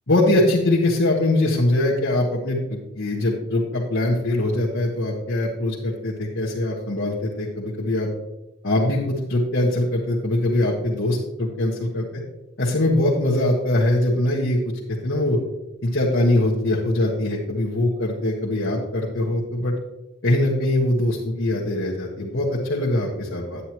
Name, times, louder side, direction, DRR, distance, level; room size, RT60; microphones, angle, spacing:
voice 1, 0.1-8.1 8.6-12.1 12.6-15.4 15.8-19.7 20.2-23.6, left 1 dB, 60° left, -5 dB, 1.4 m, -22 dB
9.7 x 9.1 x 3.0 m, 0.97 s
head